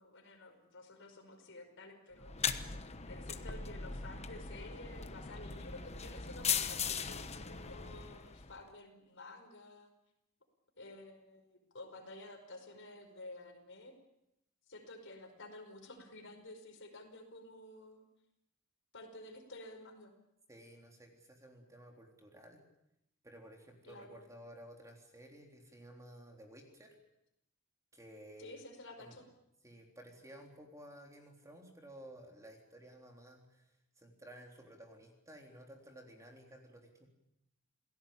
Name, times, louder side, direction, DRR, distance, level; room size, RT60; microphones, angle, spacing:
voice 1, 0.0-2.6 3.1-9.9 10.8-13.9 14.7-18.0 18.9-20.2 23.8-24.3 28.4-29.2, left 2 dB, 55° left, 5 dB, 5.2 m, -52 dB
sound 1, 2.2-8.6, left 6 dB, 30° left, 1.2 m, -39 dB
voice 2, 20.5-22.6 23.2-27.0 27.9-28.6 29.0-29.2 29.6-37.1, right 1 dB, 15° right, 2 dB, 3.6 m, -55 dB
28.0 x 17.5 x 8.7 m, 0.84 s
head